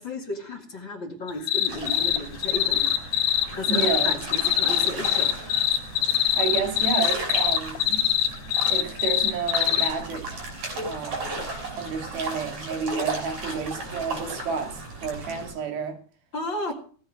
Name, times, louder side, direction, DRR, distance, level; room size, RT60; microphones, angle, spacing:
voice 1, 0.0-5.4 13.5-13.8 16.3-16.7, left 2 dB, 40° left, 1.7 m, -34 dB
sound 1, 1.3-2.2 2.4-9.9, left 13 dB, 70° left, 2.4 m, -22 dB
sound 2, 1.7-15.5, right 2 dB, 40° right, 6.3 m, -35 dB
voice 2, 3.7-4.2 6.4-8.1 8.7-10.4 10.8-11.4 11.8-16.0, right 6 dB, 60° right, 4.0 m, -30 dB
18.5 x 8.6 x 6.2 m
omnidirectional pair, 5.1 m